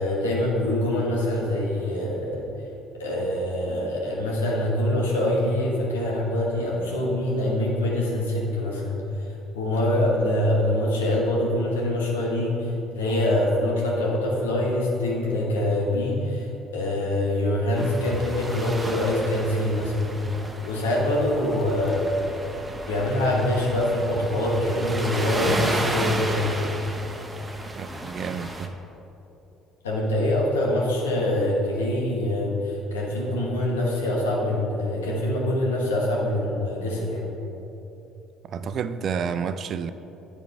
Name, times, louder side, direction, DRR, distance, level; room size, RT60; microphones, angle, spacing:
voice 1, 0.0-2.5 2.9-20.2 20.6-22.1 22.9-26.6 29.8-37.3, left 1 dB, 90° left, -3 dB, 1.2 m, -24 dB
sound 1, 17.8-28.7, right 1 dB, 15° right, 0.8 m, -33 dB
voice 2, 27.7-28.7 38.5-39.9, right 6 dB, 55° right, 11 dB, 0.3 m, -30 dB
9.4 x 3.5 x 4.6 m, 3.0 s
hypercardioid pair, 55°, 0 cm